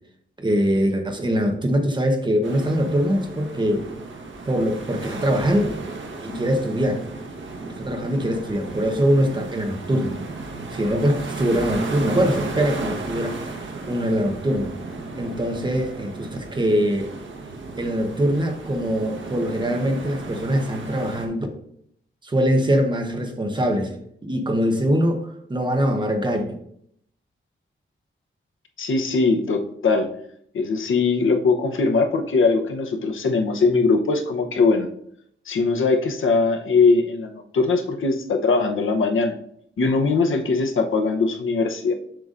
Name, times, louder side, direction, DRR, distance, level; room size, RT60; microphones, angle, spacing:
voice 1, 0.4-3.9 4.4-5.8 6.2-7.0 7.8-10.2 10.7-14.7 15.2-17.1 17.8-21.5 22.2-23.9 24.2-26.5, equal, 25° right, 4 dB, 0.9 m, -23 dB
sound 1, 2.4-21.3, right 3 dB, 75° right, 1.2 m, -34 dB
voice 2, 28.8-30.1 30.5-34.9 35.5-39.4 39.8-41.9, left 4 dB, 80° left, 5 dB, 0.9 m, -21 dB
7.6 x 6.8 x 2.5 m, 0.69 s
wide cardioid pair, 160°, 20 cm